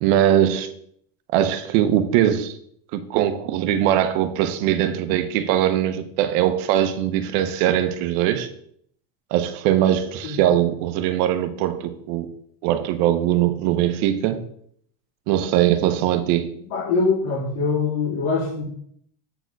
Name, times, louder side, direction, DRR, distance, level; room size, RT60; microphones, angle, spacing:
voice 1, 0.0-0.7 1.3-2.5 2.9-8.5 9.3-12.3 12.6-14.4 15.3-16.5, right 11 dB, 65° right, 0.9 m, -21 dB
voice 2, 16.7-18.6, left 4 dB, 65° left, 3.5 m, -23 dB
8.0 x 4.4 x 4.7 m
cardioid pair, 160°, 48 cm